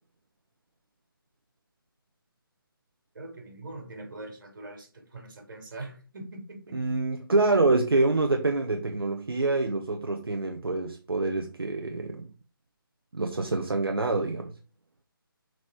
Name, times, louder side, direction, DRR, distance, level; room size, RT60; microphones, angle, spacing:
voice 1, 3.2-7.0, right 2 dB, 60° right, 3.4 m, -42 dB
voice 2, 6.7-12.2 13.1-14.5, right 3 dB, 85° right, 1.0 m, -26 dB
6.6 x 4.7 x 5.0 m
figure-of-eight pair, 155°, 12 cm